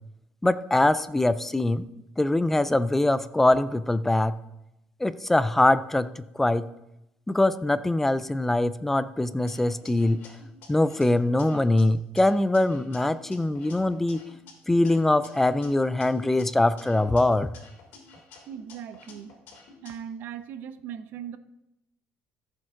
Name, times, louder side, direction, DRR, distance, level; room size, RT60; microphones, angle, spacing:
voice 1, 0.4-1.8 2.2-4.3 5.0-6.1 6.4-6.7 7.3-10.2 10.7-14.2 14.7-17.5, left 2 dB, 10° left, 14 dB, 0.3 m, -23 dB
sound 1, 9.5-11.8 12.2-14.5 14.8-17.2 17.5-19.9, left 4 dB, 60° left, 3.2 m, -50 dB
voice 2, 18.5-19.4 19.8-21.4, right 9 dB, 60° right, 11 dB, 0.7 m, -39 dB
14.5 x 7.5 x 3.7 m, 0.86 s
cardioid pair, 145°, 4 cm